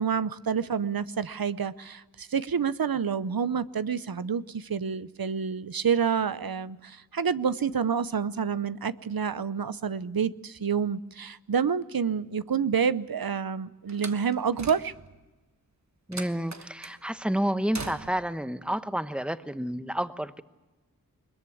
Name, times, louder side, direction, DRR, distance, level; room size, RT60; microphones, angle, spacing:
voice 1, 0.0-14.9, right 6 dB, 85° right, 0.7 m, -28 dB
Slam, 13.9-15.2 16.1-17.0 17.7-18.4, right 3 dB, 50° right, 1.3 m, -41 dB
voice 2, 16.1-20.4, equal, 5° right, 1.0 m, -30 dB
21.5 x 21.0 x 8.5 m
wide cardioid pair, 45°, 35 cm